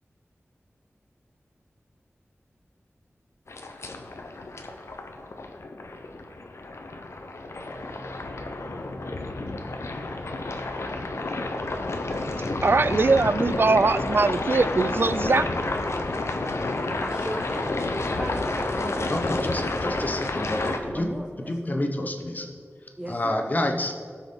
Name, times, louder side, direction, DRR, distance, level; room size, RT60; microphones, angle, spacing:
sound 1, 3.5-20.8, left 2 dB, 75° left, 0.8 m, -30 dB
sound 2, 7.6-17.8, equal, 85° right, 1.1 m, -45 dB
voice 1, 12.1-15.5, right 3 dB, 50° right, 15 dB, 0.4 m, -22 dB
voice 2, 16.6-19.4 19.9-20.2 20.6-21.8 23.0-23.5, right 1 dB, 20° right, 2 dB, 0.7 m, -38 dB
voice 3, 18.9-22.5 23.1-23.9, left 1 dB, 40° left, 3 dB, 1.0 m, -29 dB
17.5 x 6.0 x 3.9 m, 2.2 s
wide cardioid pair, 80°, 5 cm